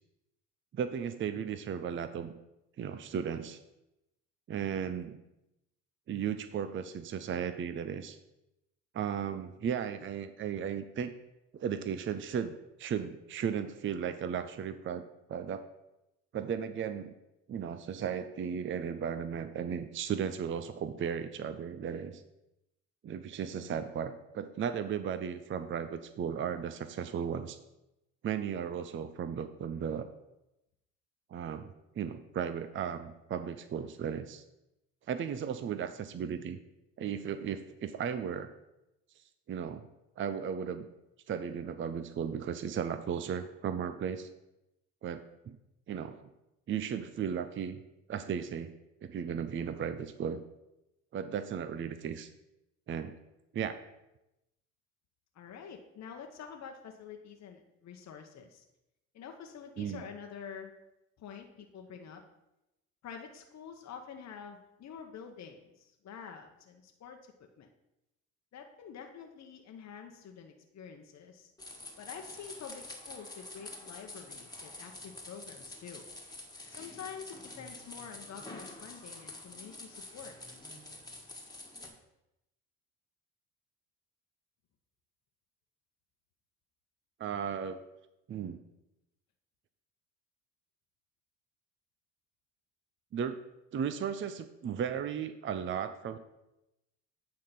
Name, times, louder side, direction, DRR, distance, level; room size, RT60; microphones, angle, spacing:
voice 1, 0.7-2.3 2.8-3.6 4.5-5.2 6.1-8.2 8.9-11.1 11.5-15.6 16.3-17.1 17.5-22.2 23.0-27.6 28.2-30.1 31.3-34.4 35.1-36.6 37.0-38.5 39.5-39.8 40.2-40.9 41.3-44.3 45.0-45.6 45.9-46.2 46.7-47.8 48.1-48.7 49.0-50.4 51.1-52.3 52.9-53.1 53.5-53.8 59.8-60.0 87.2-87.8 88.3-88.6 93.1-93.4 93.7-96.2, right 7 dB, 30° right, 10 dB, 0.6 m, -35 dB
voice 2, 55.3-58.6 59.1-60.7 61.2-62.2 63.0-67.2 67.6-67.7 68.5-71.5 72.0-76.0 76.7-80.4, left 7 dB, 45° left, 3 dB, 1.0 m, -47 dB
sound 1, 71.6-81.9, left 2 dB, 10° left, 1.7 m, -47 dB
8.8 x 3.7 x 5.8 m, 0.90 s
hypercardioid pair, 65°, 38 cm